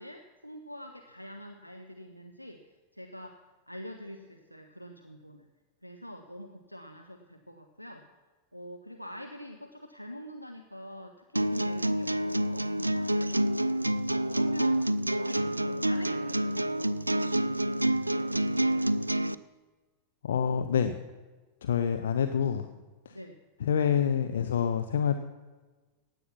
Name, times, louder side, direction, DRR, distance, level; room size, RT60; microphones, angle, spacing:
voice 1, 0.0-2.6 2.9-3.4 3.7-5.5 5.8-8.1 8.5-13.7 14.1-14.8 15.1-18.9 22.5-22.8 23.1-23.4, left 1 dB, 90° left, 4 dB, 0.8 m, -45 dB
sound 1, 11.4-19.3, right 1 dB, 85° right, 0.4 m, -28 dB
voice 2, 20.2-21.0 21.6-22.7 23.1-23.2 23.6-25.1, left 8 dB, 65° left, 8 dB, 0.7 m, -27 dB
16.0 x 9.6 x 5.9 m, 1.3 s
figure-of-eight pair, 90°, 0 cm